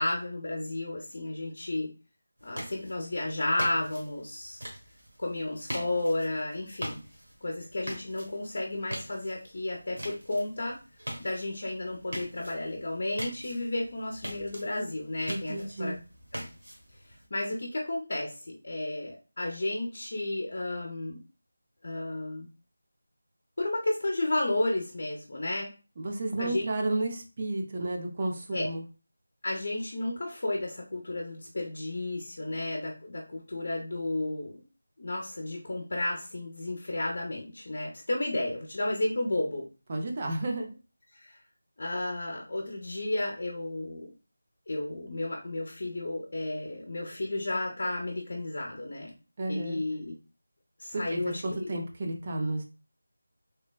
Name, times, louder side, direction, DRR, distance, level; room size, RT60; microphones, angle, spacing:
voice 1, 0.0-1.9 2.4-4.6 5.2-7.0 7.4-10.8 11.2-15.9 17.3-21.2 21.8-22.5 23.6-25.7 26.4-26.6 28.5-28.7 29.4-34.6 35.0-39.6 41.1-41.4 41.8-44.1 44.7-49.1 49.5-50.1 50.8-51.7, left 2 dB, 45° left, -1 dB, 0.5 m, -32 dB
sound 1, 2.4-17.3, equal, 85° right, 1.1 m, -43 dB
voice 2, 15.3-16.0 26.0-28.8 39.9-40.8 49.4-49.8 50.9-52.6, right 2 dB, 25° right, 2 dB, 0.4 m, -32 dB
3.2 x 2.0 x 2.2 m, 0.32 s
figure-of-eight pair, 175°, 0 cm